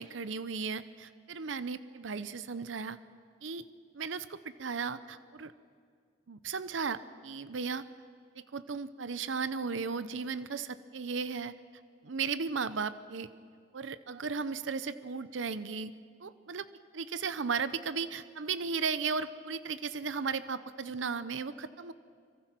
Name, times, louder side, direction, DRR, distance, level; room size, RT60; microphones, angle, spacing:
voice 1, 0.0-3.0 3.4-3.7 3.9-5.5 6.3-7.8 8.4-11.5 12.0-13.3 13.7-15.9 16.2-16.7 16.9-21.9, right 5 dB, 80° right, 14 dB, 0.7 m, -35 dB
26.0 x 24.0 x 6.0 m, 2.2 s
head